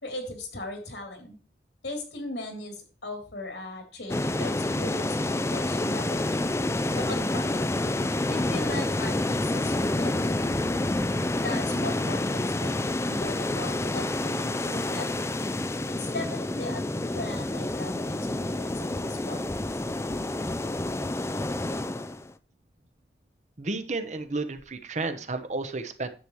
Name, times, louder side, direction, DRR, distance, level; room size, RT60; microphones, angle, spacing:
voice 1, 0.0-1.4 1.8-6.5 6.9-7.7 8.3-10.5 11.4-15.2 16.0-16.8 17.1-19.5, left 2 dB, 80° left, 3 dB, 3.3 m, -38 dB
sound 1, 4.1-22.3, left 2 dB, 15° left, 0.4 m, -28 dB
voice 2, 23.6-26.1, right 3 dB, 40° right, 9 dB, 0.9 m, -32 dB
10.0 x 7.9 x 3.1 m, 0.37 s
head